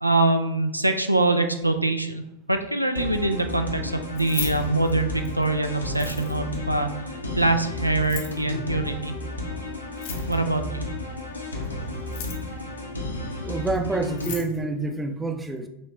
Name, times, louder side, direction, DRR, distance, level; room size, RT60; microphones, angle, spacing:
voice 1, 0.0-2.2 2.5-9.1 10.3-10.9, right 2 dB, 85° right, 6 dB, 0.4 m, -24 dB
sound 1, 3.0-14.4, left 2 dB, 80° left, 0.8 m, -32 dB
Keys jangling, 4.0-5.4 5.9-6.6 7.9-8.4 9.9-10.6 11.9-12.6 13.7-13.8 14.1-14.5, left 7 dB, 50° left, 0.9 m, -36 dB
voice 2, 13.4-15.7, right 3 dB, 10° right, 6 dB, 0.5 m, -27 dB
5.4 x 3.1 x 2.9 m, 0.87 s
figure-of-eight pair, 90°, 0 cm